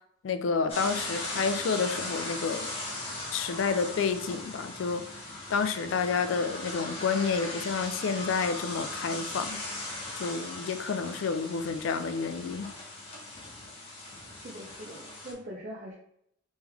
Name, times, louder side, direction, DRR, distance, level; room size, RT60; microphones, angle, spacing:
voice 1, 0.2-2.7 3.3-5.0 5.5-9.6 10.2-12.7, left 5 dB, 70° left, 0.4 m, -29 dB
sound 1, 0.7-15.3, left 2 dB, 30° left, 0.9 m, -38 dB
voice 2, 14.3-15.9, equal, 40° right, 0.6 m, -42 dB
3.4 x 3.1 x 3.5 m
head